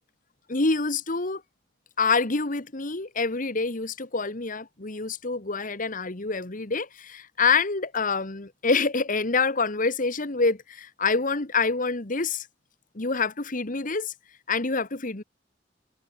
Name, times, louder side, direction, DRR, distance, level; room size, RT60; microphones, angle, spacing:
voice 1, 0.5-1.4 2.0-12.5 13.0-14.1 14.5-15.2, left 4 dB, 45° left, 1.8 m, -26 dB
head